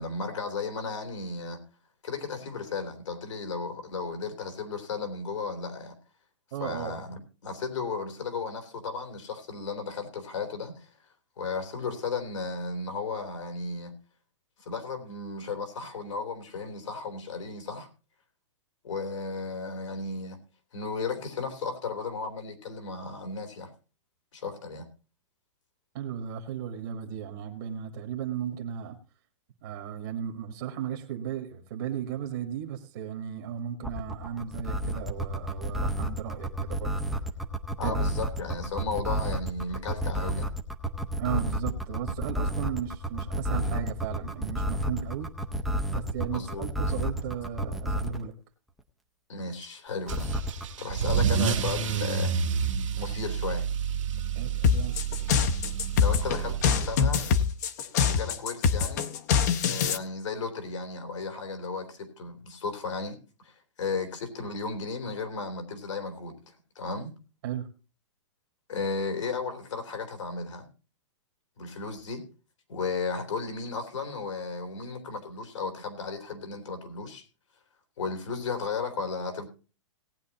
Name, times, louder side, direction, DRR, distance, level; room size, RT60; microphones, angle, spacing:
voice 1, 0.0-1.6 2.0-5.9 6.6-11.1 11.4-13.9 14.6-17.9 18.8-20.4 20.7-23.7 24.3-24.9 37.8-40.5 46.3-46.7 49.3-50.4 50.8-52.3 53.0-53.7 56.0-57.3 57.9-59.0 59.7-63.2 63.4-67.1 68.7-70.6 71.6-72.2 72.7-77.3 78.0-79.5, left 4 dB, 85° left, 6 dB, 3.3 m, -34 dB
voice 2, 6.5-7.1 25.9-29.0 29.6-36.9 37.2-37.3 37.8-38.0 41.2-45.3 45.9-48.3 54.3-55.0 67.4-67.7, right 9 dB, 45° right, 4 dB, 1.4 m, -35 dB
sound 1, 33.8-48.2 50.1-50.6, right 1 dB, ahead, 0.5 m, -30 dB
Car / Engine starting / Accelerating revving vroom, 50.1-57.2, right 7 dB, 85° right, 1.8 m, -29 dB
sound 2, 54.6-60.0, left 6 dB, 35° left, 0.7 m, -24 dB
18.0 x 9.4 x 2.9 m, 0.34 s
hypercardioid pair, 175°, 16 cm